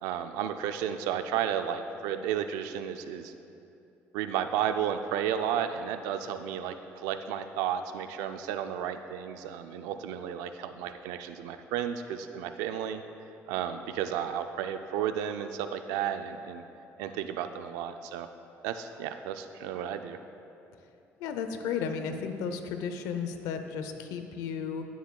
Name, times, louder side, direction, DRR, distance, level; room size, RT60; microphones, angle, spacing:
voice 1, 0.0-3.3 4.1-6.8 7.0-13.0 13.5-16.6 17.0-18.3 18.6-20.2, right 9 dB, 90° right, 9 dB, 0.4 m, -33 dB
voice 2, 21.2-24.9, left 6 dB, 85° left, 7 dB, 0.7 m, -34 dB
15.0 x 7.2 x 2.3 m, 2.7 s
supercardioid pair, 80°, 6 cm